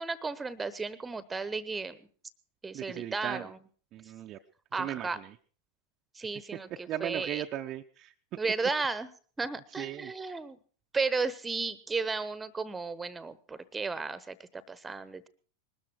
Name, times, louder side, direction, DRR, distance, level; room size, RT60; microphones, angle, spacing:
voice 1, 0.0-2.1 2.6-3.6 4.7-5.2 6.1-7.4 8.4-9.1 9.4-10.6 10.9-15.3, right 4 dB, 10° right, 18 dB, 1.0 m, -34 dB
voice 2, 2.7-3.5 3.9-4.4 4.8-5.3 6.9-8.1 9.8-10.1, right 12 dB, 35° right, 4 dB, 0.7 m, -37 dB
20.5 x 13.0 x 4.6 m, 0.44 s
figure-of-eight pair, 90°, 0 cm